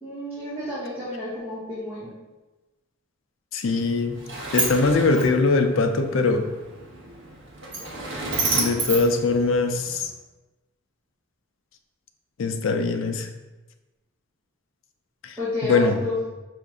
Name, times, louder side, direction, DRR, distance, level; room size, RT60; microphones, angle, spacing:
voice 1, 0.0-2.1 15.4-16.1, left 1 dB, 10° right, -13 dB, 1.3 m, -31 dB
voice 2, 3.5-4.2 4.5-6.5 8.5-10.1 12.4-13.3 15.2-15.3 15.6-16.0, left 3 dB, 70° left, 6 dB, 0.4 m, -22 dB
Sliding door, 3.6-10.0, right 3 dB, 60° right, 0.9 m, -31 dB
5.4 x 2.6 x 3.5 m, 1.1 s
head